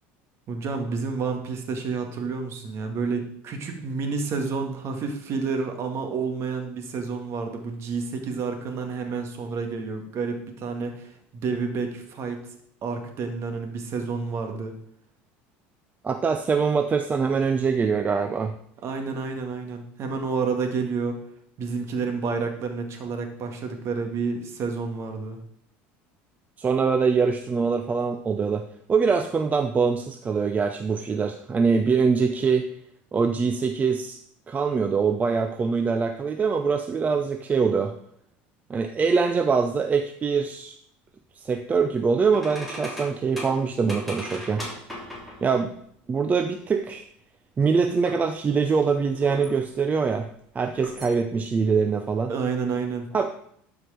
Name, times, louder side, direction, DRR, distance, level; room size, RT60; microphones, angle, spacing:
voice 1, 0.5-12.4 12.8-14.7 18.8-21.2 21.6-25.4 52.3-53.1, right 4 dB, 50° right, 4 dB, 2.0 m, -29 dB
voice 2, 16.0-18.5 26.6-28.6 28.9-32.7 33.1-34.2 34.5-37.9 38.7-40.8 41.4-44.7 45.4-45.7 46.1-47.1 47.6-50.3 50.5-52.3 53.1-53.3, right 5 dB, 25° right, 7 dB, 0.6 m, -23 dB
sound 1, 42.3-45.6 48.0-48.2 48.8-49.7 50.7-51.1, left 1 dB, ahead, 2.9 m, -38 dB
12.0 x 4.9 x 5.0 m, 0.68 s
supercardioid pair, 100°, 6 cm